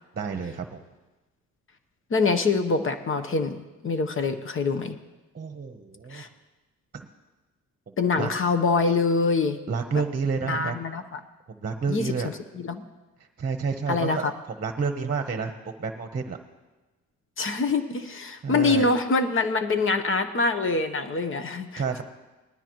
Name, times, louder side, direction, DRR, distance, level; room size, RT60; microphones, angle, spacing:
voice 1, 0.2-0.8 5.3-6.2 6.9-7.1 8.2-8.3 9.7-10.7 11.5-12.3 13.4-14.2 14.5-15.5 15.8-16.4 18.4-18.9 21.8-22.0, right 5 dB, 30° right, 6 dB, 1.0 m, -29 dB
voice 2, 2.1-5.0 6.1-6.3 8.0-9.6 10.5-11.2 11.9-12.9 13.9-14.3 17.4-21.8, left 4 dB, 45° left, 8 dB, 1.1 m, -25 dB
19.0 x 13.0 x 3.1 m, 1.1 s
cardioid pair, 90°, 30 cm